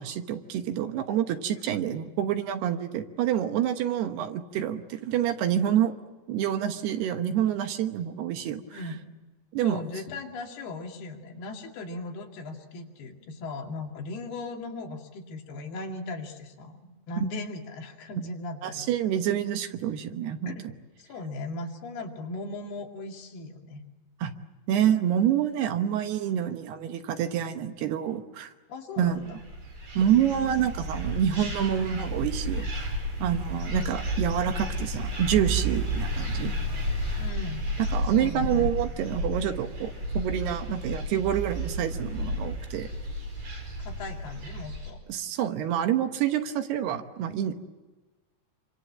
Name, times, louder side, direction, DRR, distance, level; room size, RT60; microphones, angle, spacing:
voice 1, 0.0-5.9 6.3-8.8 9.5-9.8 17.2-17.3 18.6-20.5 24.2-24.3 24.7-28.5 29.0-29.2 30.0-32.9 33.2-36.5 37.8-42.9 45.1-47.5, right 10 dB, 75° right, 8 dB, 3.1 m, -27 dB
voice 2, 8.7-9.1 9.6-18.9 20.5-20.7 21.0-23.8 28.7-29.4 30.3-30.5 37.2-37.7 38.1-38.8 43.8-45.0, left 2 dB, 70° left, 1 dB, 4.3 m, -38 dB
sound 1, 29.2-44.9, equal, 45° right, 5.8 m, -32 dB
27.0 x 25.0 x 7.5 m, 1.2 s
omnidirectional pair, 4.8 m